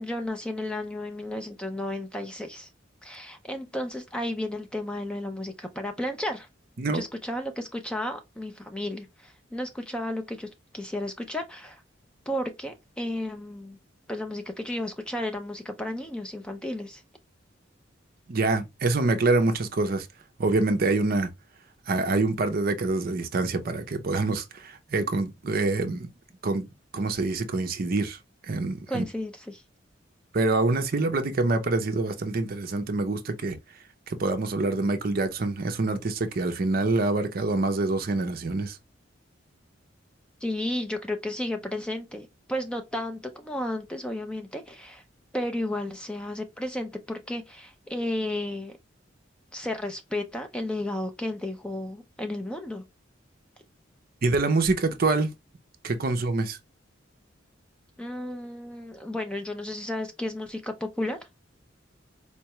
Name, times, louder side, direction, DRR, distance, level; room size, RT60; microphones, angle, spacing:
voice 1, 0.0-2.7 3.0-6.5 6.9-11.8 12.3-13.8 14.1-17.0 28.9-29.6 40.4-45.0 45.3-48.8 49.5-52.8 58.0-61.2, left 1 dB, 5° left, 0.4 m, -33 dB
voice 2, 18.3-20.1 20.4-21.3 21.9-26.1 26.4-26.7 26.9-28.2 28.5-29.0 30.3-33.6 34.1-38.8 54.2-55.3 55.8-56.6, right 3 dB, 50° right, 0.6 m, -26 dB
4.5 x 2.2 x 2.9 m
head